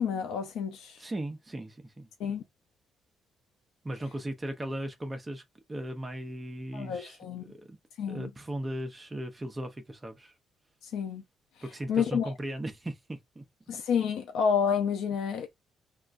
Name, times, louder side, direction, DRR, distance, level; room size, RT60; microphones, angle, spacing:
voice 1, 0.0-1.0 2.2-2.4 6.7-7.4 8.0-8.3 10.8-11.2 11.9-12.3 13.7-15.5, left 7 dB, 85° left, 0.6 m, -29 dB
voice 2, 1.0-2.1 3.8-5.4 5.7-7.8 8.1-10.3 11.6-13.4, right 1 dB, 20° right, 0.7 m, -37 dB
3.6 x 2.4 x 2.5 m
cardioid pair, 90°, 0 cm